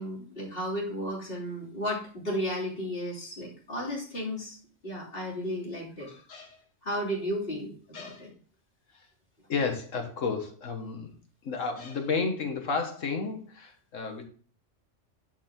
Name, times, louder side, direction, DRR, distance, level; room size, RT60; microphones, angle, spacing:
voice 1, 0.0-4.6 4.8-6.1 6.8-8.3, equal, 50° left, -5 dB, 3.3 m, -34 dB
voice 2, 6.0-6.6 7.9-8.2 8.9-9.1 9.5-11.1 11.4-14.2, left 4 dB, 90° left, 5 dB, 1.7 m, -32 dB
10.5 x 4.5 x 3.7 m, 0.43 s
omnidirectional pair, 1.3 m